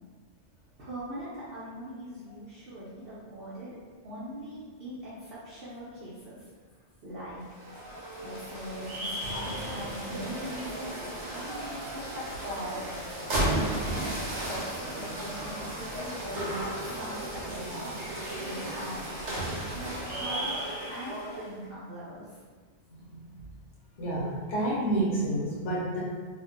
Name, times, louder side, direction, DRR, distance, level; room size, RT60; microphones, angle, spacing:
voice 1, 0.8-3.7 4.0-6.4 7.0-7.4 8.2-11.0 11.2-12.8 13.8-18.0 18.4-22.4, equal, 60° right, -10 dB, 0.8 m, -41 dB
sound 1, 7.4-21.5, right 1 dB, 80° right, 1.1 m, -34 dB
voice 2, 22.9-23.2 24.0-26.0, right 1 dB, 80° left, -6 dB, 1.1 m, -29 dB
2.6 x 2.4 x 2.4 m, 1.5 s
omnidirectional pair, 1.2 m